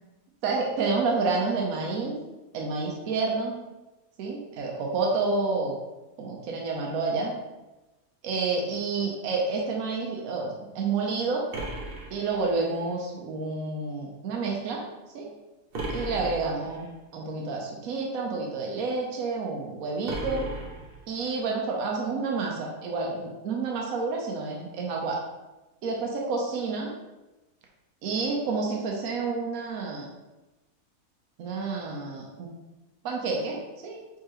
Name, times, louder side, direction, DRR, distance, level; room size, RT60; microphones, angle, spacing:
voice 1, 0.4-2.2 2.5-3.6 4.2-5.8 6.2-7.3 8.2-11.5 12.1-14.8 15.1-15.3 15.9-20.5 21.1-25.2 25.8-26.9 28.0-30.1 31.4-32.5 33.0-34.0, right 4 dB, 75° right, -1 dB, 1.1 m, -29 dB
sound 1, 11.5-12.9 15.7-16.9 20.0-21.4, right 1 dB, 50° right, 0.9 m, -36 dB
4.7 x 3.7 x 2.9 m, 1.1 s
omnidirectional pair, 1.5 m